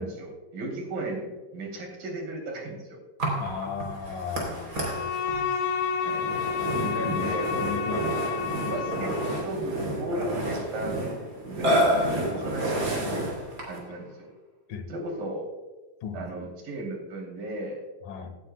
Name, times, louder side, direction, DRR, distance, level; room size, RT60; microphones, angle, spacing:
voice 1, 0.0-3.0 6.0-6.3 6.9-7.7 8.7-9.2 9.4-11.0 11.5-13.3 13.7-14.3 14.9-15.4 16.1-17.8, right 1 dB, 90° right, 0 dB, 4.7 m, -35 dB
Burping eructation, 3.2-13.9, right 1 dB, 30° right, 3.4 m, -30 dB
voice 2, 3.4-5.1 6.6-7.4 7.6-8.1 13.9-14.0 14.7-14.9 16.0-16.5 18.0-18.4, left 6 dB, 85° left, 6 dB, 3.0 m, -36 dB
Bowed string instrument, 4.7-9.5, left 6 dB, 65° left, 2.6 m, -30 dB
17.5 x 10.0 x 2.2 m, 1.3 s
omnidirectional pair, 3.8 m